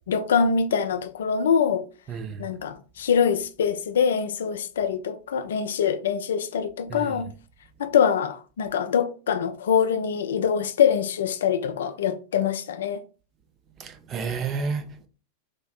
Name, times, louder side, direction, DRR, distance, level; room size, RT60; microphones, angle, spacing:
voice 1, 0.1-1.8 2.4-7.3 7.8-13.0, left 7 dB, 60° left, 0.3 m, -24 dB
voice 2, 2.1-2.5 6.9-7.2 13.8-15.1, right 5 dB, 30° right, 0.4 m, -31 dB
3.4 x 2.5 x 2.2 m
figure-of-eight pair, 90°, 0 cm